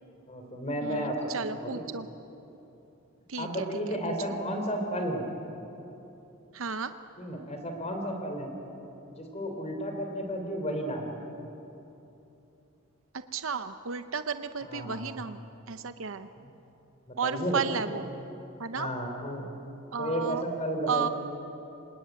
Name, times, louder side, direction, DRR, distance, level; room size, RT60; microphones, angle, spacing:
voice 1, 0.3-1.8 3.4-5.3 7.2-8.5 9.1-11.1 14.6-15.1 16.4-16.5 17.1-18.0 18.8-19.4 20.0-21.1, equal, 30° left, 4 dB, 3.7 m, -33 dB
voice 2, 0.8-2.1 3.3-4.0 4.3-4.4 6.5-6.9 13.3-15.4 15.7-16.3 17.2-18.1 18.6-18.9 19.9-20.4 20.9-21.1, right 5 dB, 70° right, 10 dB, 0.8 m, -33 dB
25.0 x 20.0 x 9.3 m, 3.0 s
head